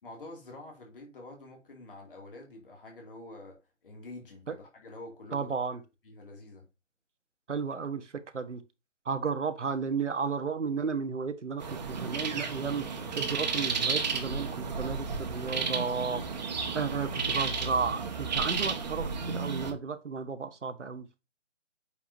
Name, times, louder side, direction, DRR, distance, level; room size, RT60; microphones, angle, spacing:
voice 1, 0.0-5.5 6.0-6.7, left 2 dB, 45° left, 2.6 m, -47 dB
voice 2, 5.3-5.8 7.5-8.6 9.1-16.2 16.7-21.1, right 5 dB, 70° right, 1.3 m, -33 dB
sound 1, 11.6-19.7, right 5 dB, 35° right, 1.5 m, -33 dB
8.5 x 4.9 x 2.7 m
figure-of-eight pair, 150°, 38 cm